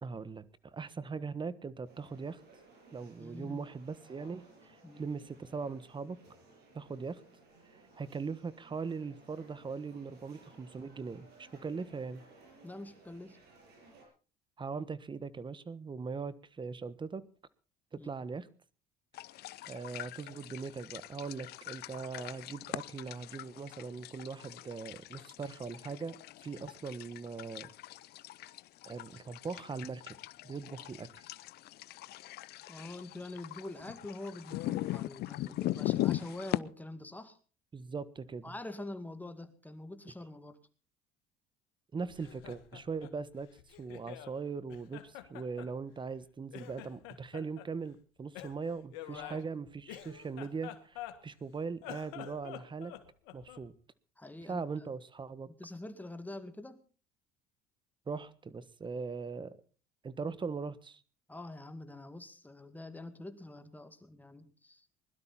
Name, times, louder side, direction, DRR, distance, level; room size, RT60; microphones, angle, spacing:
voice 1, 0.0-2.4 2.9-6.2 6.7-7.2 7.7-12.2 14.6-17.2 18.0-18.5 19.7-26.2 26.4-27.7 28.9-30.2 30.4-31.2 35.5-35.6 37.7-38.5 41.9-52.9 53.3-53.7 54.5-55.5 58.1-59.6 60.0-61.0, right 5 dB, 25° right, 17 dB, 1.3 m, -40 dB
sound 1, 1.8-14.1, right 3 dB, 65° right, 7.9 m, -60 dB
voice 2, 3.2-3.6 4.8-5.1 12.6-13.4 18.0-18.1 32.7-37.4 38.4-40.6 49.1-49.5 54.2-54.6 55.6-56.8 61.3-64.9, left 2 dB, 10° left, 9 dB, 2.1 m, -45 dB
sound 2, 19.1-36.6, left 16 dB, 60° left, 0.6 m, -40 dB
Laughter, 42.1-44.4 44.7-46.2 46.5-47.7 48.3-51.4 51.8-53.7, left 13 dB, 85° left, 1.7 m, -48 dB
21.0 x 12.0 x 4.3 m, 0.37 s
supercardioid pair, 90°, 19 cm